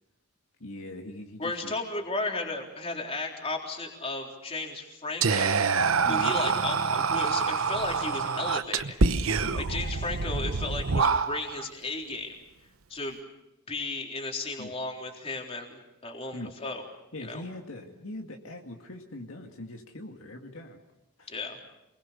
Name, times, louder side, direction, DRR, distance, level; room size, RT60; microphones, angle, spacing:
voice 1, 0.6-1.7 6.0-6.3 9.4-9.7 14.6-14.7 16.3-16.5 17.1-20.8 21.2-21.3, left 1 dB, 65° left, 2 dB, 2.2 m, -41 dB
voice 2, 1.4-9.0 9.6-12.4 12.9-13.2 13.7-16.8 17.2-17.4 21.3-21.6, left 2 dB, 25° left, 1 dB, 3.8 m, -35 dB
Whispering, 5.2-11.7, right 5 dB, 70° right, 0.9 m, -26 dB
28.5 x 21.5 x 6.9 m, 0.89 s
head